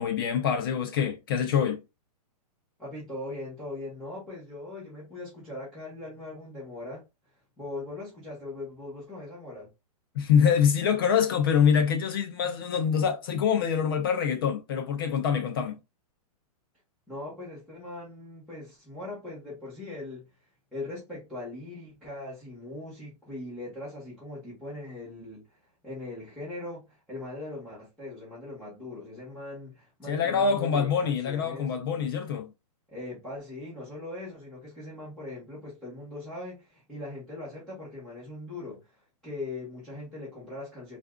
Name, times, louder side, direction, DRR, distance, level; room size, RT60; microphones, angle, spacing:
voice 1, 0.0-1.8 10.2-15.8 30.1-32.5, left 7 dB, 35° left, 0.4 m, -25 dB
voice 2, 2.8-7.0 7.6-9.7 17.1-20.3 20.7-31.7 32.9-41.0, left 2 dB, ahead, 1.3 m, -40 dB
4.5 x 2.5 x 2.2 m
hypercardioid pair, 160°, 20 cm